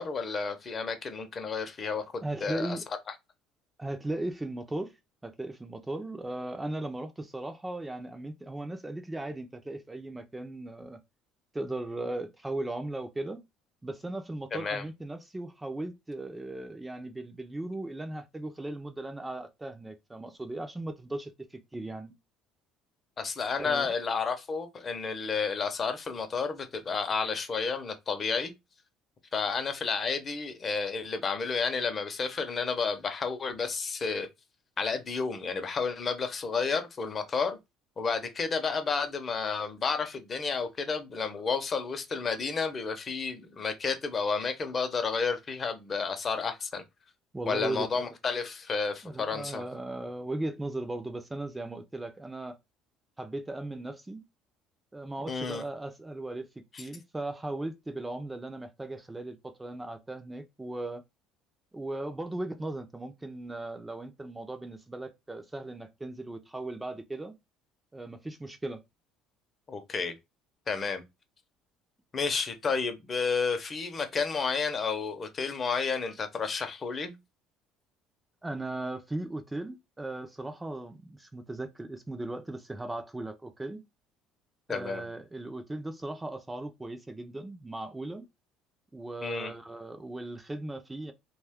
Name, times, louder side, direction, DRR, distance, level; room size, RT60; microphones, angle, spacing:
voice 1, 0.0-2.8 14.5-14.8 23.2-28.5 29.3-34.3 34.8-37.6 38.0-46.8 47.5-49.6 55.3-55.6 56.7-56.9 69.7-70.1 70.7-71.0 72.1-77.2 84.7-85.1 89.2-89.5, left 5 dB, 35° left, 0.7 m, -31 dB
voice 2, 2.2-2.8 3.8-4.9 5.2-11.0 11.5-13.4 13.8-22.1 23.6-23.9 47.3-48.0 49.0-52.6 53.2-54.2 54.9-56.5 56.8-61.0 61.7-67.3 67.9-68.8 78.4-83.8 84.7-88.3 88.9-91.1, right 2 dB, 15° right, 0.5 m, -37 dB
2.4 x 2.3 x 3.5 m
supercardioid pair, 95°, 0 cm